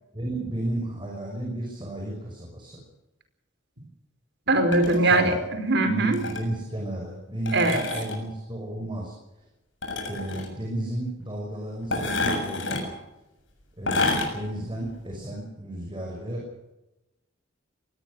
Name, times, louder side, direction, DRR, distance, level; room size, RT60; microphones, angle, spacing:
voice 1, 0.1-2.8 5.0-5.3 5.9-9.1 10.1-13.0 13.8-16.5, right 1 dB, 25° right, 0 dB, 5.7 m, -33 dB
voice 2, 4.5-6.2 7.5-7.8, right 2 dB, 65° right, 8 dB, 4.9 m, -21 dB
sound 1, 4.7-5.0 6.1-6.4 7.5-8.2 9.8-10.5 11.9-12.8 13.9-14.3 14.8-14.9, left 2 dB, 70° left, 7.3 m, -28 dB
23.0 x 19.5 x 6.4 m, 0.96 s
head